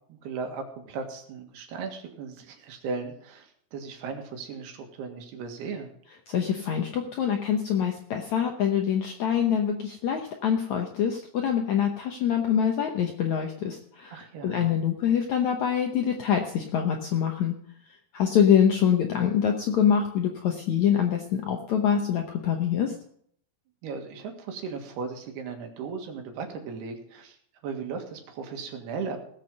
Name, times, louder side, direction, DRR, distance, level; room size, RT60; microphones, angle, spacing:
voice 1, 0.1-5.9 14.1-14.7 23.8-27.4 27.6-29.3, right 5 dB, 75° right, 4 dB, 3.7 m, -37 dB
voice 2, 6.3-17.6 18.1-22.9, left 8 dB, 80° left, 3 dB, 1.6 m, -25 dB
18.0 x 7.8 x 5.4 m, 0.64 s
omnidirectional pair, 4.8 m